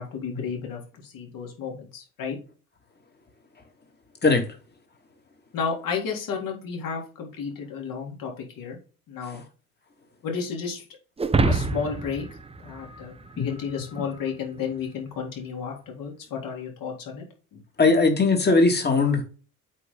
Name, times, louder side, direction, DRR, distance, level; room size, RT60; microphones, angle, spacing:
voice 1, 0.0-2.4 5.5-8.8 9.1-9.4 10.2-10.8 11.5-12.2 12.6-17.2 17.5-17.6, left 6 dB, 50° left, 3.8 m, -32 dB
sound 1, 11.2-13.7, right 3 dB, 15° right, 1.0 m, -26 dB
voice 2, 17.8-19.2, left 3 dB, 25° left, 2.7 m, -20 dB
8.3 x 5.1 x 4.0 m
figure-of-eight pair, 65°, 43 cm